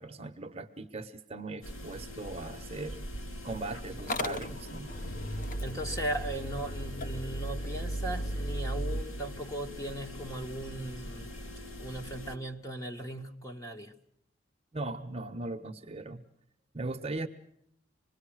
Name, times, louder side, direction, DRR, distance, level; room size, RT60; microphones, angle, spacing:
voice 1, 0.0-3.0 3.4-4.9 5.3-5.5 14.7-16.2 16.7-17.3, right 2 dB, 30° right, 1.2 m, -39 dB
sound 1, 1.6-12.4, left 1 dB, 90° left, 2.3 m, -43 dB
Motor vehicle (road) / Engine starting, 4.0-9.0, equal, 40° left, 0.9 m, -35 dB
voice 2, 5.6-11.3 11.8-13.9, right 1 dB, 15° left, 1.9 m, -38 dB
26.5 x 21.0 x 6.4 m
head